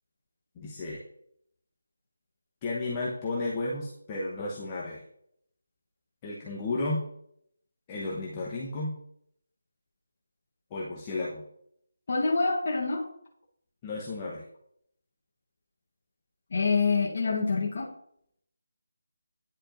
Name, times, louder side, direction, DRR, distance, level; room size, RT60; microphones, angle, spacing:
voice 1, 0.6-1.0 2.6-5.0 6.2-7.0 7.9-8.9 10.7-11.4 13.8-14.4, left 2 dB, 20° left, -5 dB, 0.9 m, -33 dB
voice 2, 12.1-13.0 16.5-17.9, left 4 dB, 45° left, -4 dB, 1.0 m, -26 dB
10.0 x 4.3 x 2.5 m, 0.71 s
figure-of-eight pair, 165°, 0 cm